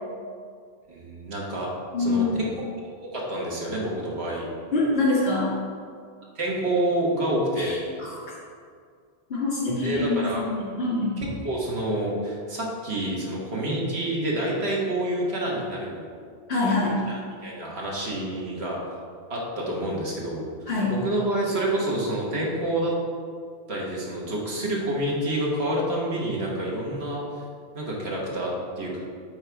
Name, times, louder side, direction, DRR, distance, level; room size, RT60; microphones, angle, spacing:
voice 1, 0.9-1.7 2.0-2.6 3.0-4.4 6.3-7.7 9.8-10.4 11.2-16.0 17.1-18.8 19.3-20.4 20.9-22.9 23.7-27.4 27.7-29.0, right 1 dB, 85° right, -3 dB, 1.6 m, -28 dB
voice 2, 1.9-2.4 4.7-5.6 7.6-8.2 9.3-11.2 16.5-17.0 20.7-21.0, left 2 dB, 70° left, -6 dB, 2.2 m, -25 dB
8.8 x 3.2 x 4.5 m, 2.1 s
omnidirectional pair, 1.0 m